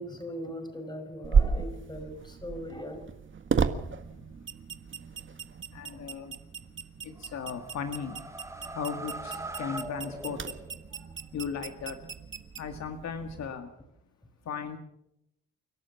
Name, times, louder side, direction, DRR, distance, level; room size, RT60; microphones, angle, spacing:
voice 1, 0.0-3.1 10.9-11.1, equal, 15° left, 5.4 m, -40 dB
sound 1, 1.2-13.5, right 6 dB, 40° right, 1.6 m, -33 dB
voice 2, 5.7-6.4 7.0-8.2 8.7-10.8 11.3-12.1 12.6-13.7 14.5-14.8, left 6 dB, 60° left, 1.9 m, -37 dB
sound 2, 7.2-11.0, right 2 dB, 10° right, 2.2 m, -42 dB
29.5 x 12.0 x 7.2 m
cardioid pair, 90°, 30 cm